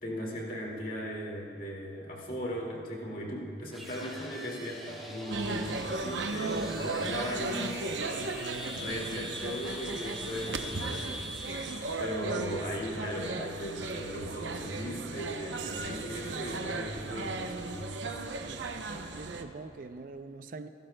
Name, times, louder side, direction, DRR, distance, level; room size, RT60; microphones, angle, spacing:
voice 1, 0.0-8.1 8.4-11.1 11.4-11.7 12.0-18.0, equal, 50° left, -2 dB, 2.1 m, -38 dB
sound 1, 3.7-12.0, equal, ahead, 1.9 m, -43 dB
sound 2, 5.3-19.4, right 3 dB, 90° right, 0.7 m, -36 dB
voice 2, 18.4-20.7, right 3 dB, 50° right, 10 dB, 0.4 m, -44 dB
27.5 x 12.0 x 2.2 m, 2.7 s
head